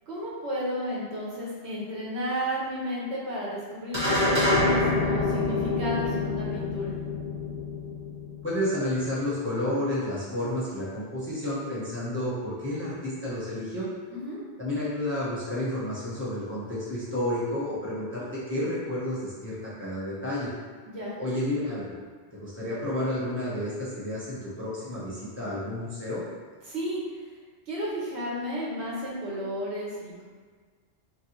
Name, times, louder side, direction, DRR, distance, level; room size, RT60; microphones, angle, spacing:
voice 1, 0.1-6.9 14.1-14.4 20.9-21.1 26.7-27.0 27.7-30.2, equal, 80° right, -5 dB, 1.1 m, -32 dB
sound 1, 3.9-8.6, left 2 dB, 30° right, 1.0 m, -26 dB
voice 2, 8.4-13.9 14.6-20.5 21.2-21.8 22.3-26.2, left 1 dB, 15° left, -8 dB, 0.6 m, -31 dB
3.0 x 2.6 x 3.0 m, 1.5 s
omnidirectional pair, 1.1 m